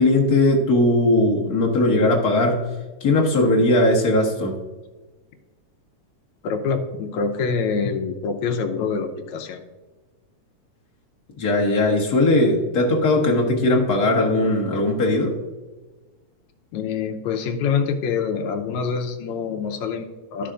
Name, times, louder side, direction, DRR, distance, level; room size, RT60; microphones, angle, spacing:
voice 1, 0.0-2.7 3.0-4.6 11.4-15.3, left 2 dB, 45° left, -2 dB, 1.4 m, -19 dB
voice 2, 6.4-9.6 16.7-20.5, left 5 dB, 75° left, 4 dB, 2.0 m, -25 dB
13.5 x 5.7 x 2.5 m, 1.2 s
omnidirectional pair, 3.3 m